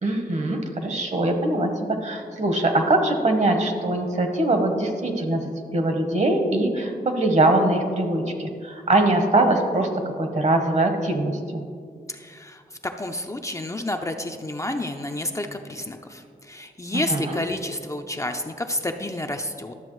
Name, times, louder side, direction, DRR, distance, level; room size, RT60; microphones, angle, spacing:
voice 1, 0.0-9.9 10.2-11.6 16.9-17.4, right 2 dB, 50° right, 5 dB, 1.1 m, -22 dB
voice 2, 12.1-19.7, left 1 dB, 20° left, 4 dB, 0.5 m, -30 dB
12.0 x 7.0 x 3.1 m, 2.2 s
cardioid pair, 80°, 16 cm